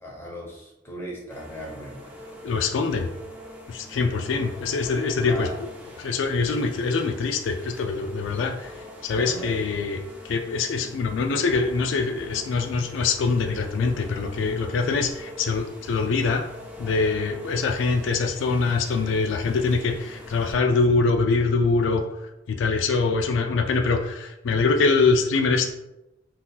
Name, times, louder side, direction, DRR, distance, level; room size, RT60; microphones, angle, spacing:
voice 1, 0.0-2.0 5.2-5.5 8.3-8.4 9.1-9.8, equal, 15° left, -4 dB, 0.9 m, -37 dB
sound 1, 1.3-20.5, left 1 dB, 10° right, 0.5 m, -43 dB
voice 2, 2.4-3.1 3.7-5.5 6.0-8.7 9.0-16.4 16.8-22.0 22.5-25.7, left 4 dB, 90° left, 5 dB, 0.3 m, -24 dB
3.7 x 2.8 x 2.3 m, 0.91 s
head